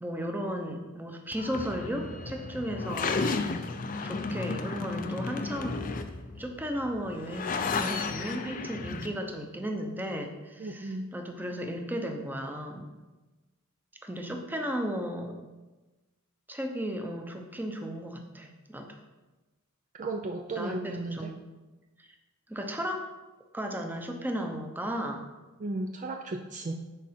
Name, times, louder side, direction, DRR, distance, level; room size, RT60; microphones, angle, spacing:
voice 1, 0.0-3.1 4.0-5.8 6.4-12.9 14.0-15.3 16.5-19.0 20.6-21.4 22.0-22.1 22.5-23.1 23.5-25.3, equal, 10° right, 4 dB, 0.8 m, -35 dB
sound 1, 1.3-9.1, left 4 dB, 40° left, 0.5 m, -33 dB
voice 2, 10.6-11.1 20.0-21.3 25.6-26.8, right 2 dB, 35° right, 4 dB, 0.4 m, -35 dB
10.0 x 4.7 x 4.3 m, 1.2 s
head